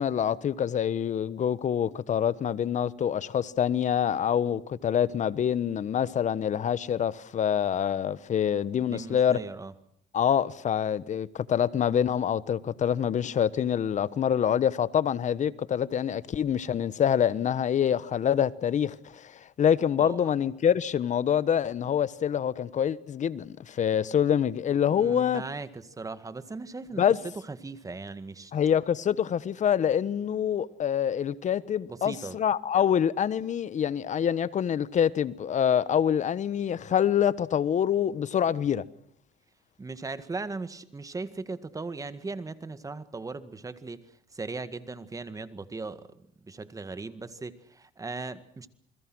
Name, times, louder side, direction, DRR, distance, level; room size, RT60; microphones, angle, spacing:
voice 1, 0.0-9.4 10.1-25.4 27.0-27.2 28.5-38.8, left 9 dB, 45° left, 1.2 m, -26 dB
voice 2, 8.9-9.7 20.0-20.2 24.9-28.5 31.9-32.4 39.8-48.7, right 3 dB, 20° right, 1.9 m, -38 dB
28.5 x 21.5 x 6.3 m
cardioid pair, 110°, 17 cm